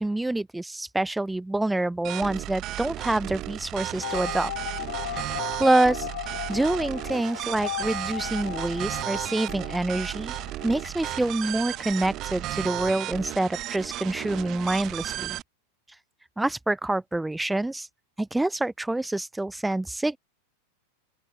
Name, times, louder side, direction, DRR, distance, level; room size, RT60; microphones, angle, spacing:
voice 1, 0.0-4.5 5.1-5.3 5.6-6.1 6.5-10.4 10.6-15.4 16.4-17.9 18.2-20.2, right 2 dB, 5° right, 0.8 m, -26 dB
sound 1, 2.0-15.4, right 15 dB, 40° right, 2.1 m, -34 dB
sound 2, 4.0-12.5 12.8-12.9 13.1-13.2, left 13 dB, 75° left, 2.6 m, -37 dB
open air
hypercardioid pair, 115°, 0 cm